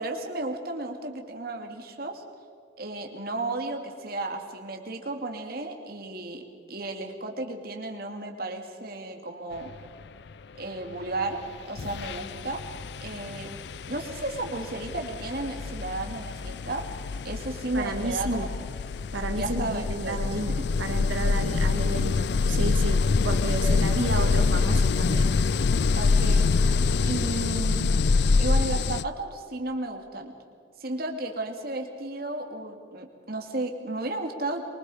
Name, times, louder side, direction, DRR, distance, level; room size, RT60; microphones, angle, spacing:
voice 1, 0.0-2.2 2.8-6.4 6.7-9.7 10.5-11.4 11.6-12.6 13.0-13.5 13.9-16.8 17.2-18.5 19.4-20.2 25.9-26.5 27.0-28.1 28.4-30.3 30.8-34.6, right 2 dB, 50° right, 3 dB, 2.5 m, -33 dB
sound 1, 11.2-11.4 11.8-29.0, left 4 dB, 60° left, 0.4 m, -25 dB
voice 2, 17.7-18.5 19.1-25.3, right 2 dB, 80° right, 5 dB, 1.9 m, -32 dB
24.5 x 24.0 x 5.0 m, 2.3 s
head